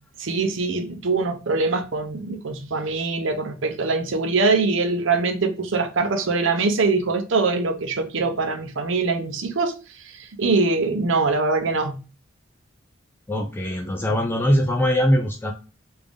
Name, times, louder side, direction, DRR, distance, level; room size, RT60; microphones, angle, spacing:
voice 1, 0.2-9.7 10.4-12.0, right 3 dB, 70° right, 0.6 m, -23 dB
voice 2, 13.3-15.5, equal, 10° left, 0.3 m, -21 dB
3.3 x 2.6 x 3.3 m
head